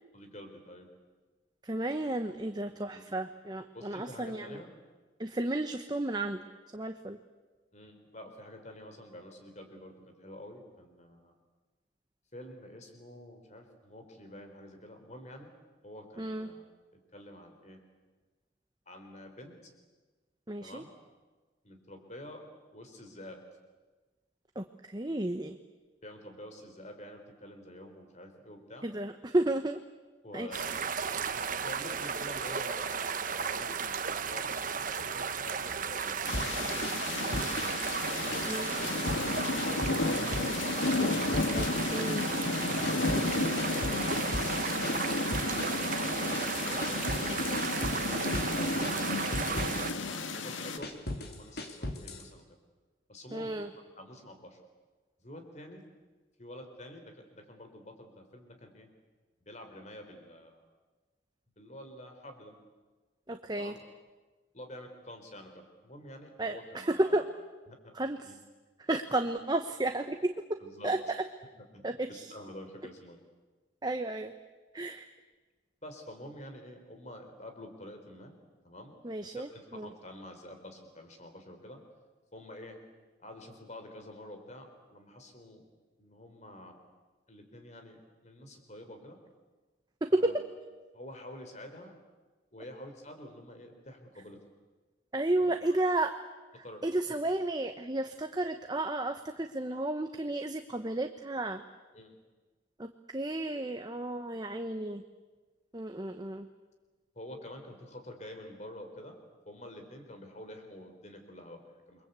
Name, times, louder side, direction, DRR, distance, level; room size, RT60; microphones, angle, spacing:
voice 1, 0.1-0.9 2.9-3.2 3.7-4.7 7.7-11.3 12.3-15.5 15.8-16.6 17.1-17.8 18.9-19.7 20.6-20.9 21.6-22.5 22.7-23.4 26.0-28.9 30.2-31.0 31.3-33.8 34.1-37.4 37.9-41.0 41.9-45.2 46.1-48.0 48.5-52.4 53.1-53.6 54.0-54.6 55.2-55.8 56.4-58.9 59.5-60.7 61.6-62.6 63.6-63.8 64.5-67.3 67.7-67.9 68.2-68.4 70.6-70.9 71.7-73.2 75.8-78.3 78.6-78.9 79.2-81.8 82.3-82.8 83.2-85.6 86.0-86.8 87.3-88.0 88.2-89.2 90.1-90.4 90.9-92.0 92.5-94.4 95.4-95.8 96.6-96.8 101.9-102.1 107.1-109.2 109.5-112.1, left 1 dB, 35° left, 5 dB, 4.3 m, -48 dB
voice 2, 1.6-4.6 5.2-6.4 6.7-7.2 16.2-16.5 20.5-20.8 24.5-25.6 28.8-29.8 30.3-30.6 38.5-38.7 41.5-42.3 53.3-53.7 63.3-63.7 66.4-67.3 67.9-68.3 68.9-70.6 70.8-71.0 71.8-72.3 73.8-74.3 74.7-75.1 79.0-79.9 90.0-90.3 95.1-96.1 96.6-101.6 102.8-105.0 105.7-106.5, right 2 dB, 20° right, 7 dB, 1.0 m, -32 dB
sound 1, 30.5-49.9, right 6 dB, 45° right, 1.2 m, -35 dB
sound 2, 36.3-50.8, left 3 dB, 90° left, 1.9 m, -33 dB
sound 3, 36.3-37.8 38.1-39.3 39.6-40.5 40.8-42.3 42.6-47.3 47.6-48.5 48.8-50.2 50.6-52.3, left 1 dB, 55° left, 2.9 m, -38 dB
29.0 x 23.0 x 8.3 m, 1.3 s
head